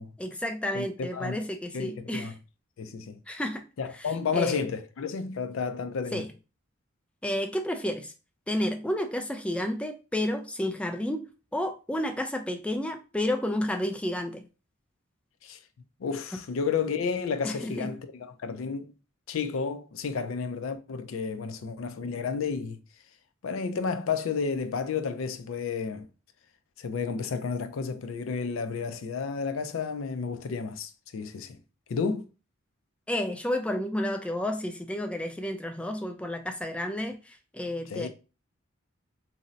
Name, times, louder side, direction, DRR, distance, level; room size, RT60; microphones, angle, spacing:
voice 1, 0.2-2.4 3.3-3.7 3.9-4.6 6.1-6.3 7.2-8.1 8.5-14.4 17.4-17.9 33.1-38.1, left 1 dB, 5° left, 0.3 m, -31 dB
voice 2, 1.7-2.3 2.8-3.2 3.8-6.2 15.4-15.6 16.0-18.0 18.4-18.9 19.3-22.8 23.4-26.1 26.8-31.6 31.9-32.3 37.9-38.1, left 5 dB, 80° left, 0.4 m, -31 dB
2.7 x 2.0 x 3.8 m
head